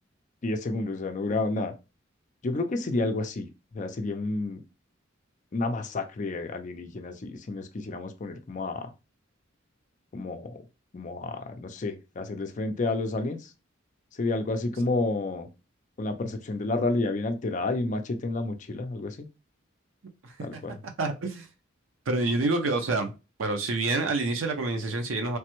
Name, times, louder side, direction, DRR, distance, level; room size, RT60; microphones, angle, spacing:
voice 1, 0.4-1.7 2.4-3.5 3.7-4.6 5.5-8.9 10.1-10.6 10.9-13.5 14.2-15.5 16.0-19.3 20.4-20.8, left 2 dB, 40° left, 0.4 m, -30 dB
voice 2, 20.2-20.6 21.0-21.5 22.1-23.1 23.4-25.4, right 2 dB, 85° right, 0.5 m, -27 dB
3.2 x 2.1 x 2.9 m
head